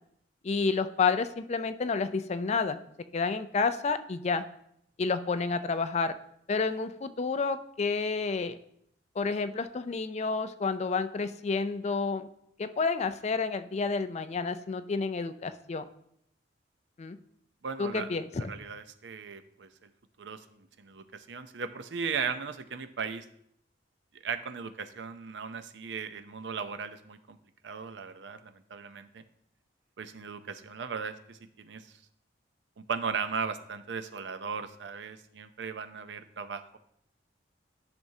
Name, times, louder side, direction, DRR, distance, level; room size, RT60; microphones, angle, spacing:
voice 1, 0.4-2.8 3.1-4.5 5.0-6.1 6.5-8.6 9.2-12.3 12.6-15.8 17.0-17.2 17.8-18.4, left 4 dB, 35° left, 11 dB, 0.4 m, -30 dB
voice 2, 17.6-18.1 18.5-19.9 20.2-23.3 24.1-27.4 27.6-29.2 30.0-31.9 32.8-36.8, right 6 dB, 70° right, 10 dB, 0.6 m, -37 dB
10.5 x 6.0 x 2.8 m, 0.72 s
head